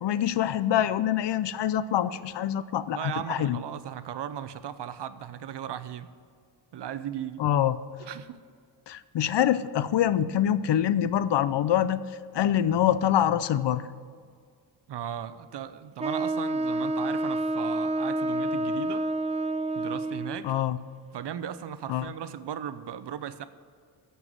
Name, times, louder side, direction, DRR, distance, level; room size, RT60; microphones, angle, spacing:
voice 1, 0.0-3.6 7.4-7.8 8.9-12.0 12.3-13.8 20.4-20.8 21.9-22.1, left 10 dB, 65° left, 15 dB, 0.6 m, -25 dB
voice 2, 2.9-6.1 6.7-7.4 8.0-8.4 14.9-19.1 19.7-20.5 21.1-23.4, right 9 dB, 60° right, 13 dB, 0.7 m, -37 dB
Wind instrument woodwind instrument, 16.0-20.4, right 2 dB, 15° right, 0.4 m, -28 dB
14.0 x 5.6 x 7.7 m, 2.1 s
cardioid pair, 85°, 47 cm